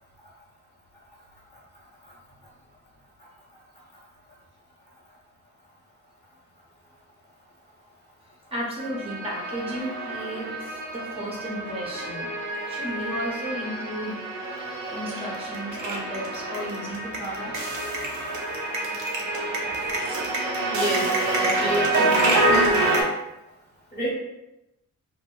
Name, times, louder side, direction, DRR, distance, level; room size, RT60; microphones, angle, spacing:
voice 1, 8.5-12.3 12.7-14.2 14.9-17.5, equal, 20° right, -5 dB, 0.7 m, -34 dB
sound 1, 8.8-23.0, right 2 dB, 75° right, 0.7 m, -27 dB
voice 2, 20.7-21.1 21.4-22.9 23.9-24.1, right 1 dB, 20° left, -6 dB, 0.9 m, -29 dB
2.7 x 2.0 x 2.3 m, 0.90 s
cardioid pair, 90°, 30 cm